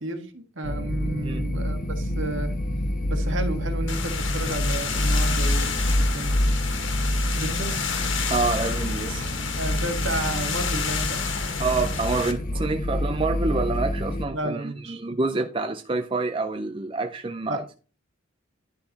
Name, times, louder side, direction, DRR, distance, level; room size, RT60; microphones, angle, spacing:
voice 1, 0.0-2.5 3.1-6.7 7.4-7.9 9.6-11.4 14.3-15.0 17.5-17.6, right 2 dB, 60° right, 1.7 m, -32 dB
sound 1, 0.6-14.3, left 1 dB, 40° left, 1.1 m, -27 dB
sound 2, 3.9-12.3, left 6 dB, 60° left, 1.8 m, -31 dB
voice 2, 8.3-9.4 11.6-17.8, right 3 dB, 25° right, 0.5 m, -27 dB
11.0 x 5.7 x 4.1 m
head